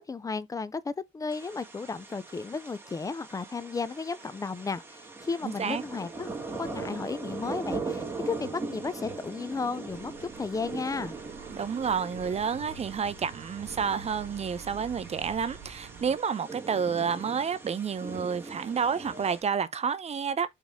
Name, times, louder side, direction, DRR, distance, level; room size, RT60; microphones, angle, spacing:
voice 1, 0.0-11.1, left 4 dB, 15° left, 0.4 m, -34 dB
sound 1, 1.3-19.4, right 3 dB, 10° right, 1.8 m, -41 dB
voice 2, 5.4-5.8 11.5-20.5, right 6 dB, 35° right, 0.5 m, -30 dB
sound 2, 9.9-16.2, right 6 dB, 75° right, 0.9 m, -47 dB
4.1 x 3.6 x 3.4 m
cardioid pair, 90°, 20 cm